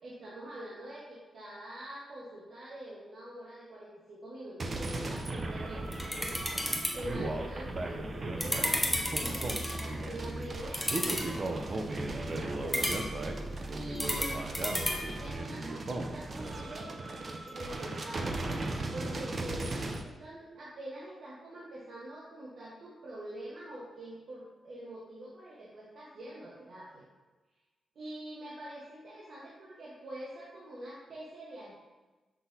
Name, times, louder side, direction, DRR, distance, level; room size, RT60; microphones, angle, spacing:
voice 1, 0.0-13.0 13.7-14.5 15.2-17.0 17.5-18.4 18.9-27.1 27.9-31.7, right 1 dB, 60° right, -7 dB, 1.3 m, -45 dB
sound 1, 4.6-20.0, right 2 dB, 40° right, 0.6 m, -37 dB
sound 2, 5.3-15.4, equal, ahead, 0.8 m, -35 dB
6.0 x 5.8 x 2.8 m, 1.2 s
wide cardioid pair, 115°, 0 cm